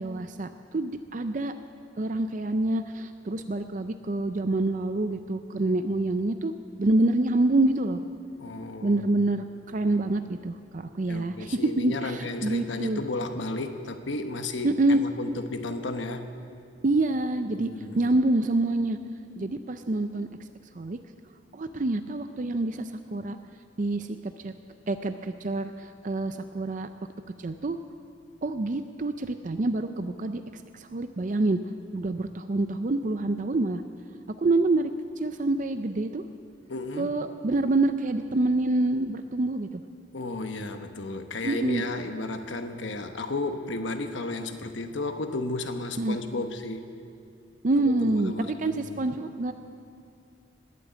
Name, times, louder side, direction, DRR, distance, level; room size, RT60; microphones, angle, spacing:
voice 1, 0.0-1.5 2.0-6.5 6.8-8.0 8.8-13.0 14.6-15.0 16.8-17.7 18.0-19.0 19.4-20.3 20.7-21.0 21.5-23.4 23.8-24.5 24.9-26.9 27.4-27.8 28.4-30.4 30.7-31.6 31.9-33.8 34.4-34.9 35.2-36.2 36.9-39.8 41.4-41.8 46.0-46.2 47.6-48.3 48.6-49.5, right 2 dB, 40° right, 9 dB, 0.5 m, -26 dB
voice 2, 8.4-9.0 11.1-16.3 17.5-18.1 36.7-37.1 40.1-46.9 47.8-49.0, left 2 dB, 75° left, 7 dB, 1.1 m, -33 dB
20.0 x 8.4 x 8.3 m, 2.5 s
head